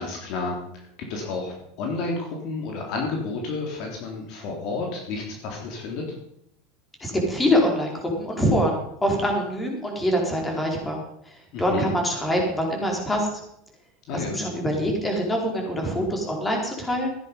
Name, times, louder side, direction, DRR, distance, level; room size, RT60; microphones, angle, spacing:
voice 1, 0.0-6.2 11.5-11.9 14.1-14.3, left 3 dB, 55° left, 0 dB, 3.4 m, -31 dB
voice 2, 7.0-11.0 11.3-13.3 14.1-17.2, equal, 10° left, 1 dB, 4.7 m, -24 dB
15.5 x 10.0 x 5.6 m, 0.74 s
supercardioid pair, 125°, 0 cm